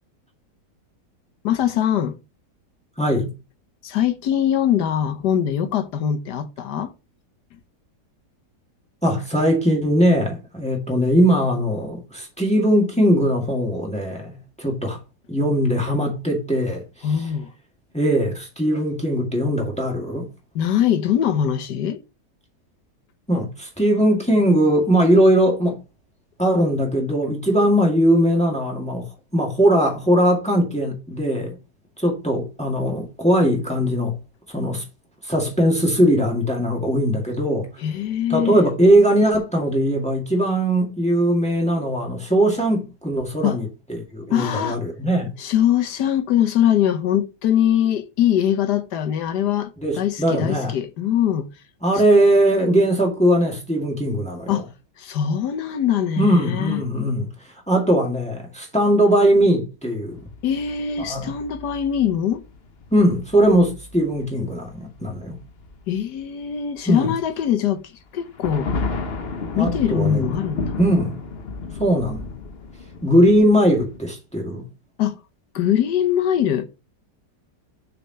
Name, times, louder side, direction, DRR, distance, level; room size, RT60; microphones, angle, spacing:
voice 1, 1.4-2.2 3.8-6.9 17.0-17.5 20.5-22.0 37.8-38.7 43.4-43.6 44.3-44.8 45.4-49.7 50.0-51.5 54.5-54.7 55.0-56.8 60.4-62.4 65.9-68.7 69.6-70.8 75.0-75.2 75.5-76.7, left 10 dB, 75° left, 1.5 m, -22 dB
voice 2, 3.0-3.3 9.0-15.0 15.3-17.1 17.9-20.3 23.3-25.8 26.4-31.6 32.0-34.2 34.5-34.8 35.2-37.7 38.3-45.3 49.8-50.7 51.8-54.6 56.2-57.3 57.7-60.2 61.0-61.3 62.9-65.4 66.9-67.1 69.5-70.3 70.8-71.2 71.8-72.3 73.0-74.7, equal, 5° left, 1.8 m, -20 dB
sound 1, 60.1-66.5 66.8-67.2 67.5-67.6 68.1-74.0, left 4 dB, 45° left, 1.0 m, -33 dB
6.8 x 4.5 x 5.2 m
omnidirectional pair, 1.8 m